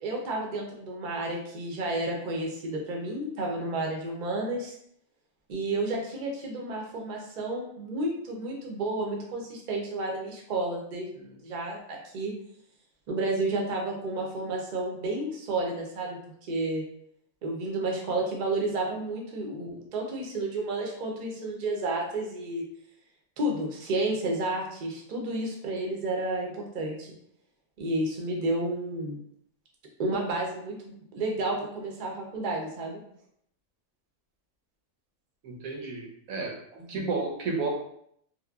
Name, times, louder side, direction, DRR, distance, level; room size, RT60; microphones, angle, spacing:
voice 1, 0.0-4.7 5.5-12.3 13.1-16.2 16.5-16.8 17.4-22.6 23.4-27.1 27.8-29.2 30.0-33.0 36.9-37.1, right 2 dB, 55° right, 0 dB, 0.5 m, -31 dB
voice 2, 35.4-37.7, right 3 dB, 90° right, 1 dB, 1.1 m, -32 dB
3.0 x 2.1 x 2.2 m, 0.69 s
omnidirectional pair, 1.4 m